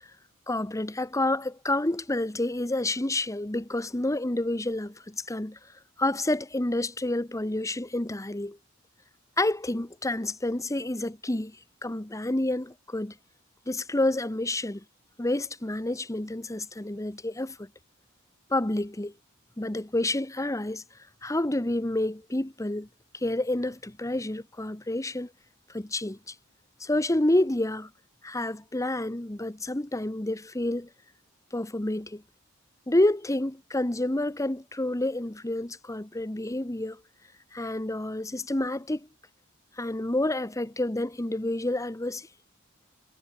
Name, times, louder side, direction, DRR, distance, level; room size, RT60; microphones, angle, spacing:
voice 1, 0.5-5.6 6.0-8.6 9.4-11.6 11.8-13.1 13.7-14.8 15.2-17.7 18.5-19.1 19.6-20.8 21.2-22.9 23.1-25.3 25.7-26.3 26.8-27.9 28.2-30.9 31.5-32.2 32.9-37.0 37.5-39.1 39.8-42.3, left 1 dB, 15° left, 1.1 m, -29 dB
head